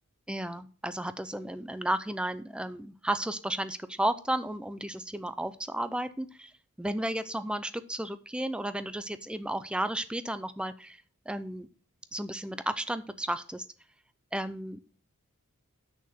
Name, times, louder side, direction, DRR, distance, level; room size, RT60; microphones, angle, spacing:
voice 1, 0.3-6.5 6.8-11.7 12.1-13.7 14.3-14.8, right 1 dB, 5° right, 12 dB, 0.4 m, -33 dB
6.5 x 6.1 x 6.8 m, 0.40 s
head